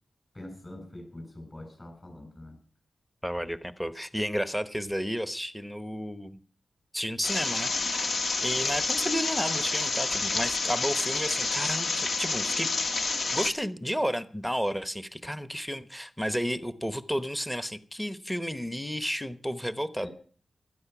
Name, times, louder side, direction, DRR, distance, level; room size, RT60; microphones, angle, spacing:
voice 1, 0.3-2.6 20.0-20.1, left 1 dB, 25° left, 5 dB, 7.6 m, -44 dB
voice 2, 3.2-6.4 6.9-8.1 8.4-12.7 13.3-20.1, equal, 5° left, 12 dB, 0.9 m, -32 dB
sound 1, 7.2-13.5, left 3 dB, 65° left, 1.6 m, -29 dB
17.0 x 13.0 x 6.0 m, 0.43 s
wide cardioid pair, 115°, 0 cm